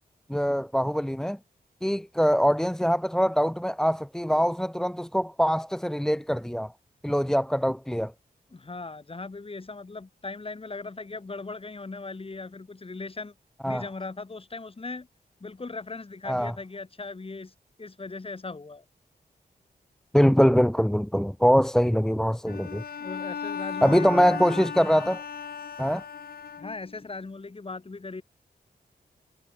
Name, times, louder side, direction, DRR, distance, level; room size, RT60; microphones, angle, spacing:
voice 1, 0.3-1.4 1.8-6.7 7.0-8.1 13.6-13.8 16.3-16.5 20.1-22.8 23.8-25.2 25.8-26.0, equal, 5° left, 1.1 m, -23 dB
voice 2, 8.5-13.3 13.6-15.1 15.4-17.5 17.8-18.8 23.0-24.4 26.6-28.2, left 3 dB, 35° left, 4.5 m, -38 dB
Bowed string instrument, 22.5-27.1, left 6 dB, 65° left, 1.2 m, -36 dB
wide cardioid pair, 105°, 17 cm